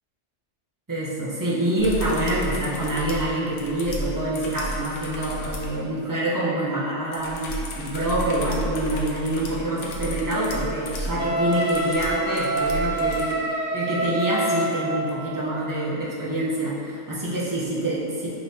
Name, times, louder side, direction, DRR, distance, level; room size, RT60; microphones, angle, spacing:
voice 1, 0.9-18.3, right 1 dB, 35° right, -7 dB, 0.3 m, -26 dB
sound 1, 1.8-5.8 7.1-13.4 15.1-15.2, equal, 80° left, 0.9 m, -33 dB
Wind instrument woodwind instrument, 11.2-15.1, right 1 dB, 70° right, 0.9 m, -26 dB
5.0 x 2.8 x 2.7 m, 2.6 s
omnidirectional pair, 1.3 m